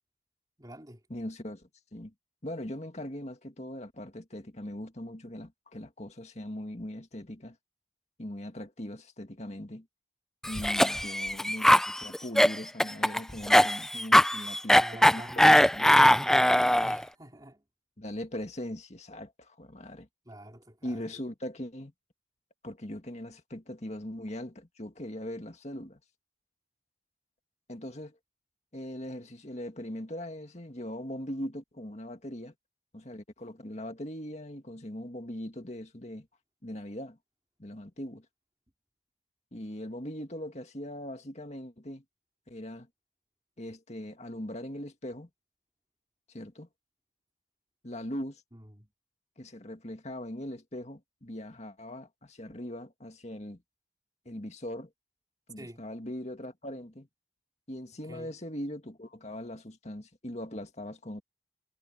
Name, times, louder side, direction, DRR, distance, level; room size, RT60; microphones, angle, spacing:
voice 1, 0.6-1.0 14.7-17.6 20.3-21.1 48.5-48.9 55.6-55.8 58.1-58.3, right 1 dB, 20° right, 3.5 m, -47 dB
voice 2, 1.1-2.1 2.4-7.6 8.2-9.9 10.4-14.9 15.1-16.0 18.0-20.1 20.8-21.9 22.6-26.0 27.7-28.2 28.7-32.5 32.9-36.3 36.6-37.2 37.6-38.3 39.5-42.0 42.5-42.9 43.6-45.3 46.3-46.7 47.8-48.4 49.4-53.6 54.3-54.9 55.5-57.1 57.7-61.2, left 1 dB, 35° left, 2.1 m, -40 dB
Cough, 10.4-17.0, left 1 dB, ahead, 0.4 m, -21 dB
head